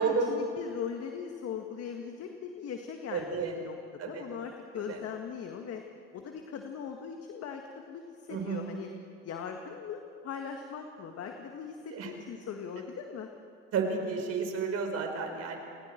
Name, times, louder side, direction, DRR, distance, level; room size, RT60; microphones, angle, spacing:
voice 1, 0.0-3.8 4.0-5.8 6.1-7.6 7.9-8.9 9.2-11.8 12.0-13.3, left 7 dB, 50° left, 4 dB, 1.8 m, -40 dB
voice 2, 3.1-3.5 4.0-4.3 4.9-5.0 8.3-8.6 11.9-12.1 13.7-15.6, right 5 dB, 50° right, 3 dB, 4.7 m, -31 dB
29.0 x 20.0 x 4.6 m, 2.4 s
supercardioid pair, 90°, 32 cm